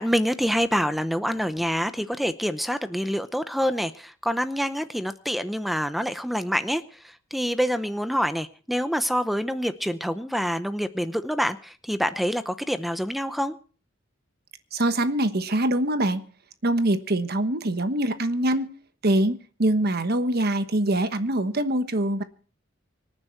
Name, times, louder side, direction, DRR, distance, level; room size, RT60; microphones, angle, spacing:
voice 1, 0.0-13.5, equal, ahead, 11 dB, 0.7 m, -26 dB
voice 2, 14.7-16.2 16.6-18.7 19.0-22.2, right 1 dB, 55° right, 10 dB, 1.2 m, -24 dB
25.5 x 10.0 x 4.5 m, 0.41 s
head